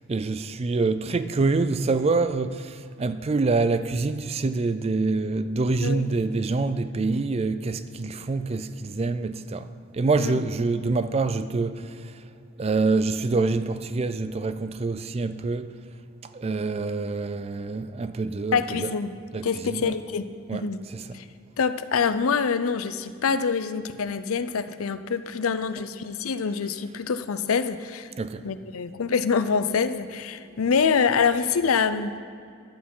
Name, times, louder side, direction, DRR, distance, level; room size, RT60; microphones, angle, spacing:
voice 1, 0.1-9.7 9.9-11.8 12.6-15.7 16.3-18.9 19.3-20.0 20.5-21.1 28.2-28.4, right 3 dB, 30° right, 0.3 m, -26 dB
voice 2, 18.5-19.1 19.4-20.2 20.5-20.8 21.1-21.2 21.6-28.1 28.4-32.2, left 5 dB, 85° left, 0.5 m, -25 dB
11.5 x 8.5 x 5.5 m
head